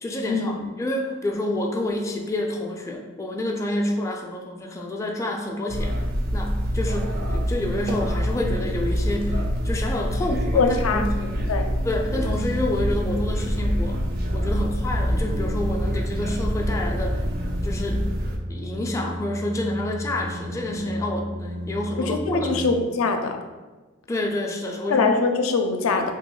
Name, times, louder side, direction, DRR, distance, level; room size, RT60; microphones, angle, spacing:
voice 1, 0.0-6.0 6.3-9.4 9.6-11.4 11.8-14.0 14.3-17.2 17.6-18.1 18.5-22.6 24.1-25.1 26.0-26.1, left 1 dB, 15° left, 1 dB, 0.3 m, -28 dB
sound 1, 5.7-18.4, equal, 50° right, 0.5 m, -26 dB
voice 2, 10.5-11.1 11.5-11.7 22.0-23.3 24.9-26.1, left 4 dB, 85° left, 5 dB, 0.4 m, -22 dB
sound 2, 12.1-22.7, equal, 85° right, 1.0 m, -34 dB
2.8 x 2.8 x 3.9 m, 1.2 s
head